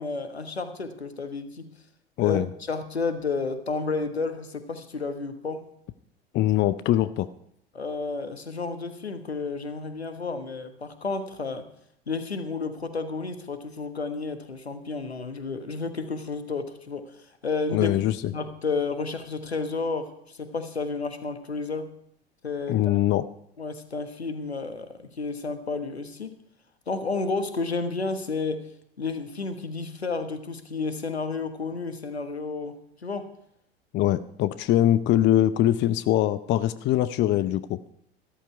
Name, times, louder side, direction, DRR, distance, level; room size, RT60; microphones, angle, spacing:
voice 1, 0.0-1.7 2.2-5.7 7.7-11.7 12.1-17.2 17.4-17.9 18.3-21.9 22.4-23.0 23.6-26.4 26.9-28.7 29.0-33.3, left 4 dB, 85° left, 10 dB, 1.3 m, -31 dB
voice 2, 6.3-7.3 17.7-18.1 22.7-23.3 33.9-37.8, left 13 dB, 35° left, 15 dB, 0.7 m, -22 dB
14.0 x 13.0 x 4.6 m, 0.74 s
figure-of-eight pair, 75°, 31 cm